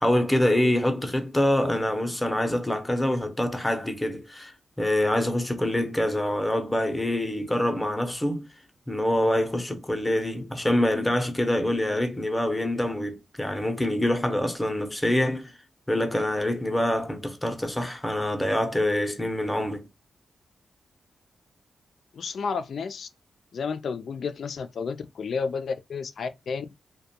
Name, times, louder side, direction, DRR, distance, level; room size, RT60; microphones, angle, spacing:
voice 1, 0.0-4.5 4.8-8.5 8.9-15.5 15.9-19.8, left 1 dB, 10° left, 0.7 m, -25 dB
voice 2, 22.1-23.1 23.5-26.7, left 5 dB, 70° left, 0.3 m, -31 dB
2.4 x 2.2 x 2.7 m
cardioid pair, 60°, 0 cm